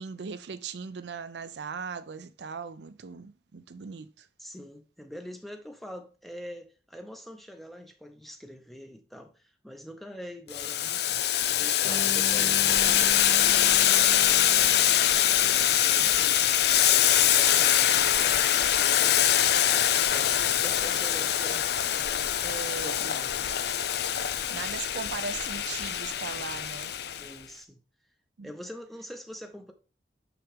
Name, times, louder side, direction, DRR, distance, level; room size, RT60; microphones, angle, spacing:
voice 1, 0.0-4.3 16.0-16.2 22.4-23.0 24.5-26.9 28.4-28.5, right 5 dB, 65° right, 0.5 m, -38 dB
voice 2, 4.4-11.0 11.6-14.8 15.4-16.5 16.9-19.3 20.1-22.3 22.8-23.5 27.2-27.8 28.4-29.7, equal, ahead, 0.7 m, -45 dB
Boiling, 10.5-27.3, left 11 dB, 60° left, 0.5 m, -24 dB
Bass guitar, 11.8-16.1, equal, 45° left, 1.7 m, -41 dB
6.1 x 5.8 x 3.6 m
head